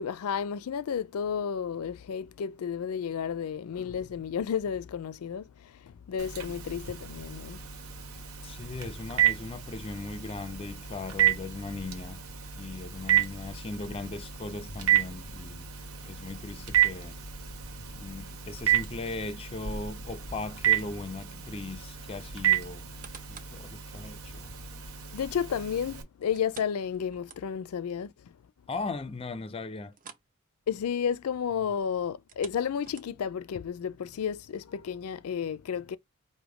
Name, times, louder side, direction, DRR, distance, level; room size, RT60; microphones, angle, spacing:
voice 1, 0.0-5.5 5.8-7.6 25.1-28.1 30.7-36.0, left 7 dB, 85° left, 0.4 m, -32 dB
Telephone, 6.2-26.0, right 11 dB, 90° right, 1.1 m, -31 dB
voice 2, 8.4-12.2 12.6-15.7 16.0-17.2 17.9-22.9 23.3-24.5 28.7-30.0, left 3 dB, 25° left, 0.4 m, -38 dB
sound 1, 22.7-23.6 24.1-24.2 26.3-27.8 28.1-28.2 28.7-28.8 29.9-30.3 30.6-30.8 32.1-33.4 34.0-34.1, right 5 dB, 40° right, 0.7 m, -50 dB
5.0 x 2.1 x 4.8 m
head